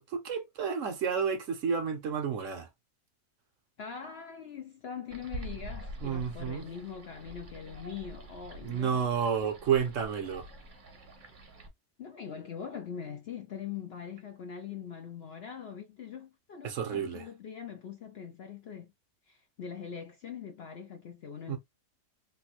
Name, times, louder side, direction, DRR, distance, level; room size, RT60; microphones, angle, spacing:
voice 1, 0.0-2.7 6.0-6.7 8.6-10.5 16.6-17.3 21.5-21.6, right 7 dB, 65° right, 1.0 m, -31 dB
voice 2, 3.8-9.1 12.0-18.9 19.3-21.6, left 7 dB, 60° left, 0.6 m, -42 dB
sound 1, 5.1-11.7, right 1 dB, 40° right, 0.8 m, -45 dB
3.3 x 2.5 x 2.8 m
omnidirectional pair, 1.6 m